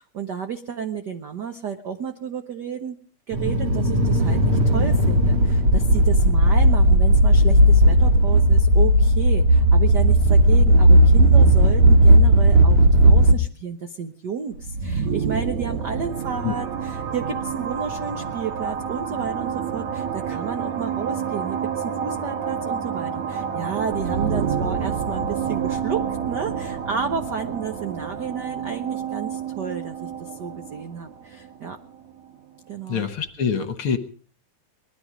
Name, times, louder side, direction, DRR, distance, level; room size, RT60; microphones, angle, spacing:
voice 1, 0.0-3.0 3.3-31.8 32.7-33.0, right 6 dB, 85° right, 7 dB, 0.9 m, -32 dB
sound 1, 3.3-13.3, right 1 dB, 50° right, 2.4 m, -15 dB
sound 2, 14.5-32.2, right 7 dB, 70° right, 2.6 m, -29 dB
voice 2, 32.9-34.0, left 7 dB, 55° left, 9 dB, 1.8 m, -25 dB
21.0 x 13.0 x 5.0 m, 0.42 s
omnidirectional pair, 3.5 m